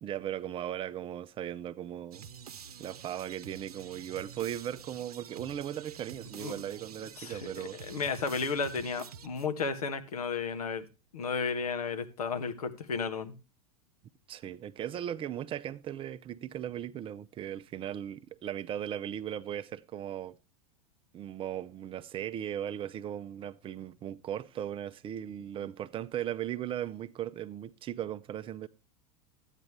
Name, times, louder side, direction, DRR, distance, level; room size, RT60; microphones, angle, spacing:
voice 1, 0.0-2.2 2.8-7.8 14.3-20.4 21.1-28.7, right 10 dB, 30° right, 0.6 m, -37 dB
sound 1, 2.1-9.8, right 8 dB, 80° right, 0.8 m, -48 dB
voice 2, 7.7-10.8 11.1-13.3, left 5 dB, 80° left, 1.4 m, -33 dB
12.0 x 9.1 x 3.2 m
hypercardioid pair, 95°, 19 cm